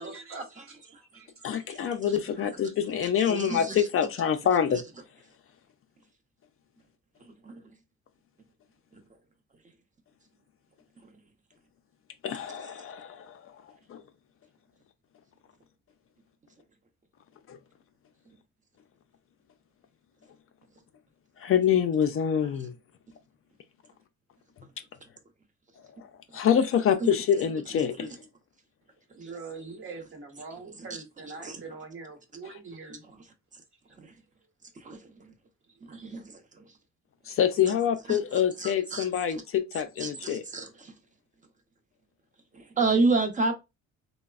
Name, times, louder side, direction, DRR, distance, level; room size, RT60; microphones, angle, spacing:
voice 1, 0.0-2.1 2.6-3.3 29.1-33.0 35.7-36.2, right 4 dB, 45° right, 0.9 m, -44 dB
voice 2, 1.4-4.8 12.2-13.5 13.9-14.0 17.5-17.6 21.4-22.7 26.0-26.1 26.3-28.1 37.3-40.4, left 8 dB, 45° left, 0.4 m, -26 dB
voice 3, 3.3-3.8 7.4-7.6 28.0-28.1 31.4-31.6 34.8-35.0 35.9-36.3 38.1-38.2 38.6-39.1 40.0-40.9 42.5-43.5, right 3 dB, 25° right, 0.6 m, -28 dB
3.1 x 2.0 x 2.3 m
cardioid pair, 90°, 30 cm